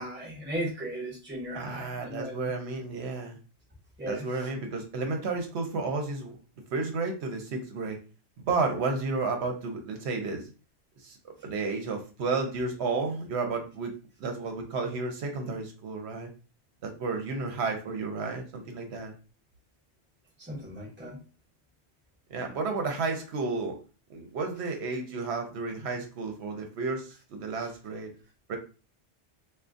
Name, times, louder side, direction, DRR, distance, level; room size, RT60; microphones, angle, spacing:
voice 1, 0.0-2.4 4.0-4.2 20.4-21.2, equal, 10° right, -2 dB, 0.7 m, -36 dB
voice 2, 1.5-3.4 4.1-6.4 6.7-8.0 8.4-10.5 11.0-13.9 14.2-16.3 16.8-19.1 22.3-23.8 24.1-28.1 28.5-28.6, right 3 dB, 75° right, 3 dB, 0.9 m, -32 dB
3.7 x 2.2 x 2.4 m, 0.34 s
omnidirectional pair, 1.1 m